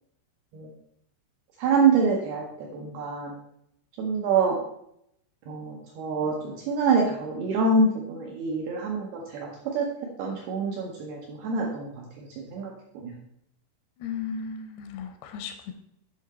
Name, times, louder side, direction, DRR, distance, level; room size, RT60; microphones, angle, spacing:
voice 1, 1.6-3.3 4.0-4.6 5.5-9.9 10.2-11.9 12.2-13.1, right 4 dB, 75° right, -1 dB, 2.4 m, -26 dB
voice 2, 14.0-15.7, left 6 dB, 85° left, 7 dB, 2.3 m, -35 dB
8.3 x 5.6 x 4.2 m, 0.75 s
omnidirectional pair, 5.6 m